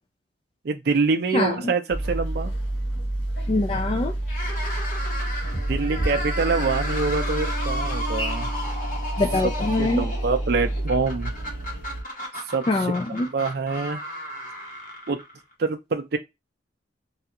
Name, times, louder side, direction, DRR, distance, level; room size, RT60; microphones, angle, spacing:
voice 1, 0.6-2.5 5.7-8.5 9.4-9.5 9.8-11.3 12.5-12.6 13.3-14.0 15.1-15.2 15.6-16.2, right 4 dB, 55° right, 0.5 m, -25 dB
voice 2, 1.3-1.7 3.5-4.1 9.2-10.1 12.7-13.3, left 2 dB, 30° left, 0.3 m, -24 dB
sound 1, 1.9-12.0, right 1 dB, 85° left, 1.5 m, -28 dB
sound 2, 4.2-15.5, left 1 dB, 45° left, 1.1 m, -34 dB
3.3 x 2.4 x 2.8 m
head